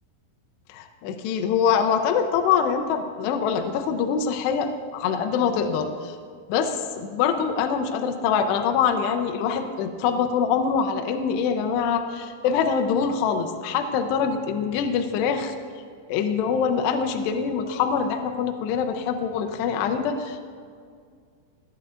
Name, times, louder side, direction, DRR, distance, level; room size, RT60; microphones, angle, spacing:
voice 1, 0.7-6.2 6.5-15.5 16.1-20.4, left 6 dB, 80° left, 6 dB, 2.5 m, -24 dB
18.5 x 9.0 x 2.5 m, 2.1 s
omnidirectional pair, 5.6 m